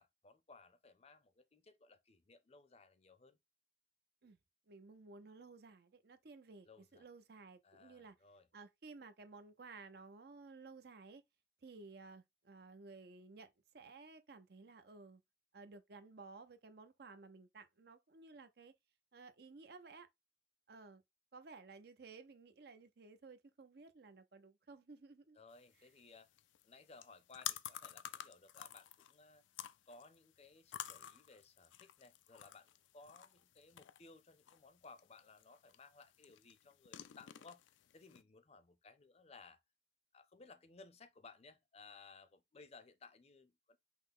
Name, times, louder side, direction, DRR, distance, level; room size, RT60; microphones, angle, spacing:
voice 1, 0.0-3.4 6.6-7.1 7.6-8.5 25.4-26.3 26.6-29.4 29.9-37.7 37.9-39.6 40.1-43.8, left 4 dB, 35° left, 0.6 m, -60 dB
voice 2, 4.7-8.2 8.5-11.2 11.6-15.2 15.5-18.7 19.1-20.1 20.7-21.0 21.3-25.4 25.8-25.9, right 4 dB, 60° right, 0.6 m, -56 dB
sound 1, 25.5-38.2, left 11 dB, 90° left, 0.4 m, -51 dB
5.7 x 2.1 x 3.7 m
head